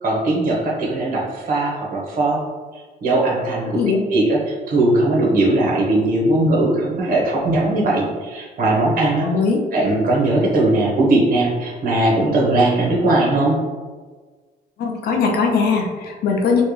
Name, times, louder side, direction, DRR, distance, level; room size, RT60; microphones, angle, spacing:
voice 1, 0.0-2.4 3.0-3.8 4.1-9.3 9.7-13.6, right 2 dB, 60° right, -3 dB, 1.3 m, -19 dB
voice 2, 9.2-9.6 14.8-16.6, left 5 dB, 70° left, 1 dB, 0.7 m, -20 dB
4.3 x 2.4 x 3.3 m, 1.4 s
cardioid pair, 110°, 17 cm